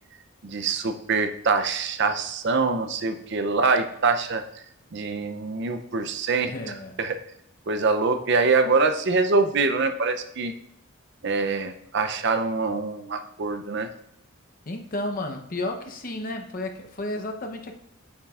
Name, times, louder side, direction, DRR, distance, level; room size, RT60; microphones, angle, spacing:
voice 1, 0.4-4.4 4.9-6.5 7.0-7.2 7.7-10.5 11.2-13.9, right 4 dB, 55° right, 8 dB, 0.5 m, -24 dB
voice 2, 6.4-7.0 14.7-17.8, left 2 dB, 40° left, 4 dB, 0.8 m, -32 dB
9.0 x 7.3 x 2.4 m, 0.74 s
head